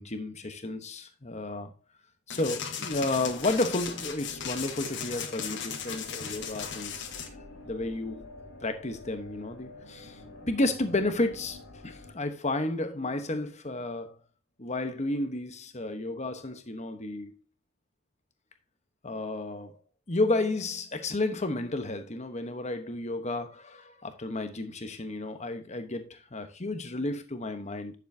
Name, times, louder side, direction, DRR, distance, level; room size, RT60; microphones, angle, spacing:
voice 1, 0.0-1.7 2.3-7.1 7.6-8.3 8.6-10.2 10.5-11.6 11.8-14.2 14.6-17.4 19.0-19.7 20.1-27.9, left 2 dB, 30° left, 1.1 m, -32 dB
sound 1, 2.3-7.3, left 7 dB, 55° left, 1.4 m, -37 dB
sound 2, 2.9-12.1, left 2 dB, 85° left, 2.9 m, -49 dB
10.5 x 7.3 x 2.8 m
head